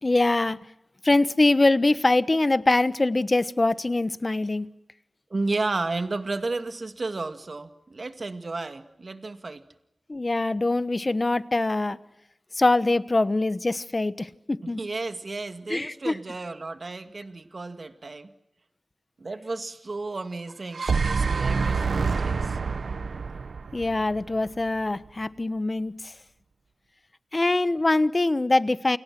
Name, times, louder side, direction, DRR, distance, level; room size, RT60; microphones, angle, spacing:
voice 1, 0.0-0.6 1.0-4.7 10.1-12.0 12.6-14.8 15.7-16.1 23.7-26.1 27.3-29.0, left 2 dB, 35° left, 14 dB, 1.2 m, -23 dB
voice 2, 5.3-9.6 14.6-18.3 19.2-22.6, right 3 dB, 50° right, 8 dB, 2.1 m, -33 dB
sound 1, 20.5-24.7, right 4 dB, 75° right, 0.9 m, -27 dB
29.5 x 28.0 x 6.2 m, 0.84 s
wide cardioid pair, 90°, 0 cm